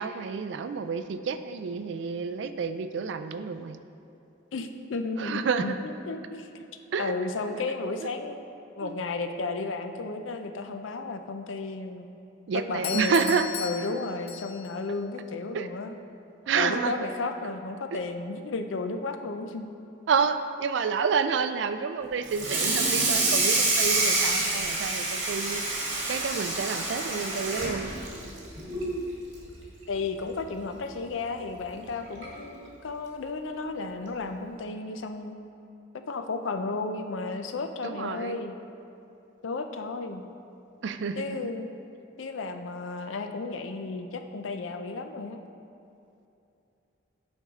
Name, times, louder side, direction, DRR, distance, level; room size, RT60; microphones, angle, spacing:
voice 1, 0.0-3.8 5.2-5.7 6.9-7.1 8.0-8.1 8.8-8.9 12.5-13.5 15.5-15.7 16.5-16.9 17.4-17.5 17.9-18.0 20.1-25.6 26.1-27.9 37.8-38.4 40.8-41.4, right 5 dB, 70° right, 10 dB, 0.4 m, -29 dB
voice 2, 4.5-6.7 7.0-8.4 8.7-12.1 12.7-15.9 16.5-19.7 29.9-35.4 36.1-38.6 39.4-40.2 41.2-41.7 42.2-45.4, left 3 dB, 85° left, 7 dB, 0.5 m, -33 dB
Doorbell, 12.8-14.8, left 8 dB, 30° left, 0.4 m, -36 dB
Water tap faucet / Sink (filling or washing), 22.3-28.9 29.3-29.6 29.9-30.0 30.4-30.5 31.6-31.7 32.2-32.4, right 2 dB, 90° right, 1.6 m, -27 dB
8.7 x 5.5 x 3.6 m, 2.7 s
head